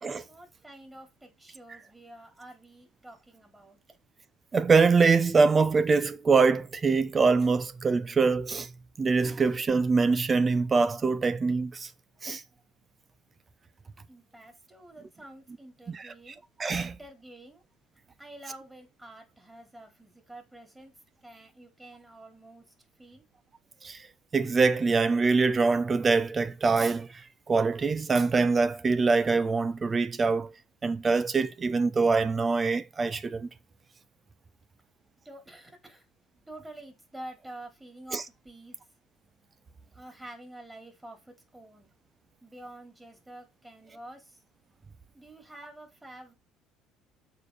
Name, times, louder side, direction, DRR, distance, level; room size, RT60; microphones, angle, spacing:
voice 1, 0.3-3.8 14.1-16.4 16.7-17.6 18.2-20.9 21.2-22.6 23.0-23.2 35.2-36.1 36.5-38.8 39.9-41.9 42.4-44.4 45.1-46.3, right 1 dB, 10° right, 4.3 m, -48 dB
voice 2, 4.5-8.7 9.0-11.9 12.2-12.4 15.9-16.1 16.6-16.9 23.8-24.0 24.3-27.1 27.5-30.5 30.8-33.5 38.1-38.2, right 4 dB, 30° right, 0.8 m, -24 dB
6.7 x 5.1 x 5.1 m
hypercardioid pair, 65°, 0 cm